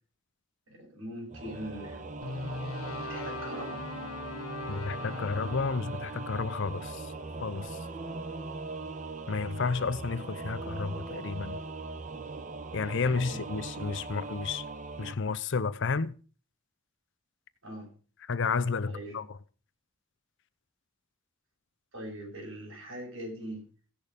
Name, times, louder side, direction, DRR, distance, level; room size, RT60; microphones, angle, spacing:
voice 1, 0.7-2.0 3.0-3.8 13.3-13.5 17.6-17.9 18.8-19.2 21.9-23.6, right 1 dB, 70° right, 7.2 m, -41 dB
Singing / Musical instrument, 1.3-15.1, right 3 dB, 35° right, 0.9 m, -40 dB
sound 1, 2.2-8.4, left 3 dB, 80° left, 1.1 m, -41 dB
voice 2, 4.7-7.1 7.4-7.8 9.3-11.6 12.7-14.6 15.0-16.1 18.3-19.4, left 4 dB, 60° left, 0.6 m, -31 dB
16.5 x 6.6 x 5.1 m
head